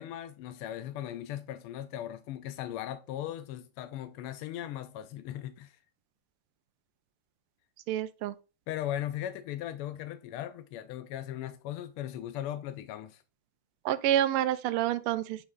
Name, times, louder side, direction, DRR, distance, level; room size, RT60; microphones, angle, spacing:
voice 1, 0.0-5.8 8.7-13.2, left 12 dB, 90° left, 1.5 m, -38 dB
voice 2, 7.9-8.3 13.8-15.4, right 12 dB, 85° right, 1.5 m, -28 dB
9.2 x 3.1 x 3.6 m
omnidirectional pair, 2.4 m